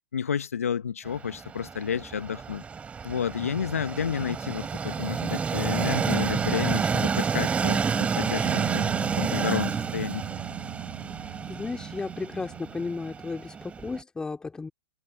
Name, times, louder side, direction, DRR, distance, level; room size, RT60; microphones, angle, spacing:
voice 1, 0.1-2.6 3.0-8.9 9.2-10.2, left 7 dB, 80° left, 1.2 m, -31 dB
Train, 1.1-14.0, right 6 dB, 15° right, 3.9 m, -30 dB
sound 1, 8.4-13.1, right 16 dB, 55° right, 5.7 m, -39 dB
voice 2, 11.2-14.7, left 4 dB, 10° left, 2.7 m, -34 dB
hypercardioid pair, 110°, 8 cm